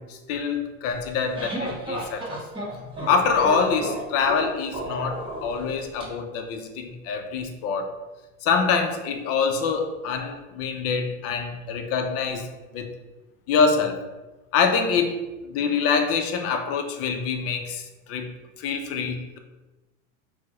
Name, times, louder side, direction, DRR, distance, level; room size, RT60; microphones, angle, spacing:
voice 1, 0.0-2.5 3.0-7.9 8.4-12.5 12.7-12.9 13.5-14.0 14.5-18.3 18.6-19.4, left 5 dB, 40° left, 5 dB, 0.4 m, -25 dB
sound 1, 1.0-6.0, right 1 dB, 15° right, 0.8 m, -33 dB
4.2 x 2.1 x 2.9 m, 1.1 s
supercardioid pair, 125°, 39 cm